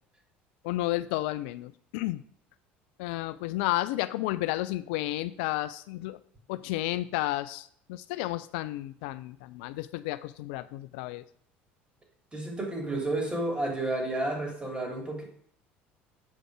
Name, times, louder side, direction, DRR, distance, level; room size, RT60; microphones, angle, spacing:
voice 1, 0.6-2.2 3.0-6.2 6.5-11.2, left 17 dB, 75° left, 14 dB, 0.4 m, -32 dB
voice 2, 12.3-15.2, right 2 dB, 20° right, 1 dB, 3.0 m, -31 dB
7.7 x 5.1 x 4.8 m, 0.62 s
hypercardioid pair, 70°, 6 cm